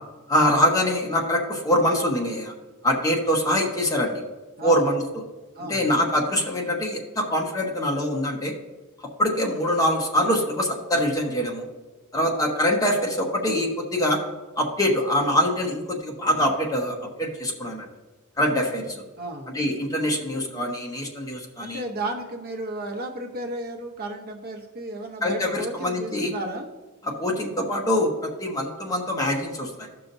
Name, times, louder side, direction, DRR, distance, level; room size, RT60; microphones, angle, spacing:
voice 1, 0.3-2.5 2.8-4.2 4.6-5.0 5.7-8.5 9.2-11.6 12.1-14.2 14.6-17.9 18.4-19.0 19.5-21.8 25.2-26.3 27.0-29.9, equal, 15° left, 0 dB, 1.1 m, -24 dB
voice 2, 4.6-4.9 5.5-5.9 19.2-19.5 21.6-26.7, right 1 dB, 45° right, 2 dB, 1.0 m, -33 dB
15.5 x 5.8 x 2.7 m, 1.2 s
head